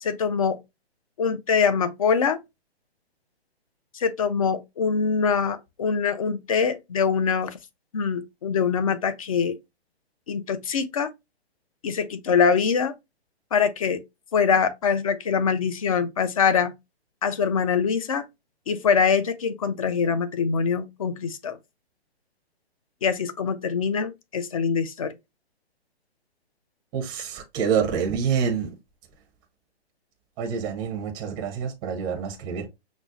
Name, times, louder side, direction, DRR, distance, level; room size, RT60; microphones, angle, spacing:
voice 1, 0.0-0.6 1.2-2.4 3.9-7.6 7.9-9.6 10.3-11.1 11.8-12.9 13.5-14.0 14.3-16.7 17.2-18.3 18.7-21.6 23.0-25.2, left 6 dB, 35° left, 0.4 m, -24 dB
voice 2, 26.9-28.7 30.4-32.7, right 7 dB, 15° right, 0.6 m, -27 dB
5.9 x 2.0 x 2.5 m
figure-of-eight pair, 135°, 32 cm